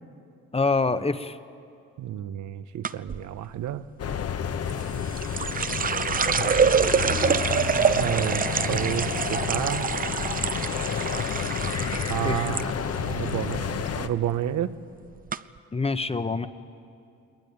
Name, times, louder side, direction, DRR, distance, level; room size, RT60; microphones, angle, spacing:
voice 1, 0.5-1.4 12.2-12.5 15.7-16.5, left 3 dB, 20° left, 11 dB, 0.9 m, -25 dB
voice 2, 2.0-3.8 7.9-8.4 8.7-9.9 12.1-14.7, right 11 dB, 75° right, 11 dB, 1.0 m, -30 dB
sound 1, 2.8-3.2 4.7-12.7 12.9-13.5 13.9-14.2 14.9-15.0 15.3-15.4, right 7 dB, 30° right, 0.6 m, -26 dB
sound 2, 4.0-14.1, left 7 dB, 55° left, 1.1 m, -30 dB
21.0 x 21.0 x 9.4 m, 2.5 s
cardioid pair, 90°, 30 cm